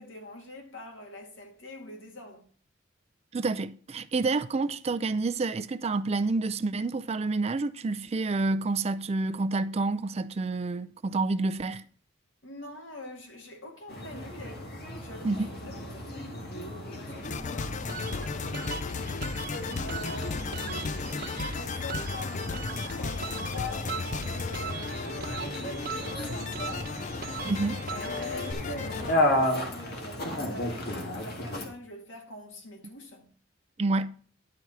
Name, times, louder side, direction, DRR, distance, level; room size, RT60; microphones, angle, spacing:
voice 1, 0.0-2.5 12.4-14.7 15.0-16.1 17.0-19.3 19.8-27.0 27.9-33.3, left 2 dB, 80° left, 2.1 m, -44 dB
voice 2, 3.3-11.8 15.2-15.5 27.4-27.8 33.8-34.1, right 3 dB, 35° right, 0.4 m, -28 dB
sound 1, 13.9-31.7, left 1 dB, 55° left, 1.9 m, -35 dB
sound 2, 17.2-29.1, left 4 dB, 40° left, 0.4 m, -35 dB
sound 3, 17.9-28.5, right 6 dB, 50° right, 1.0 m, -41 dB
10.5 x 4.7 x 5.6 m
head